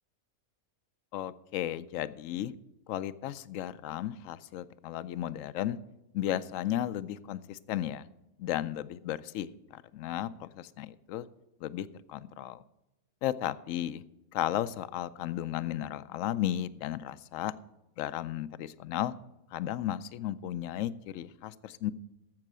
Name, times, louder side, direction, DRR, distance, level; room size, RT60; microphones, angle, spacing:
voice 1, 1.1-2.5 2.9-5.8 6.1-8.1 8.4-11.3 11.6-12.6 13.2-14.0 14.3-17.5 18.0-19.1 19.5-21.9, left 12 dB, 70° left, 16 dB, 0.9 m, -34 dB
12.0 x 7.7 x 6.2 m, 0.94 s
omnidirectional pair, 1.5 m